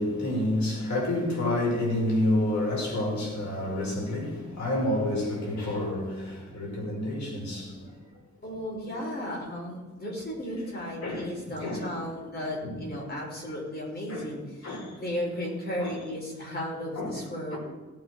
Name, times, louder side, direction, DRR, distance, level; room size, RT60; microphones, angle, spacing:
voice 1, 0.0-8.0 11.0-11.3 11.6-11.9 12.6-12.8 14.1-14.3 14.6-14.9 15.8-16.0 17.0-17.2 17.5-17.6, left 1 dB, 70° left, -2 dB, 5.4 m, -29 dB
voice 2, 8.4-17.6, equal, 35° left, -2 dB, 5.2 m, -35 dB
18.0 x 8.8 x 4.8 m, 1.3 s
wide cardioid pair, 135°, 29 cm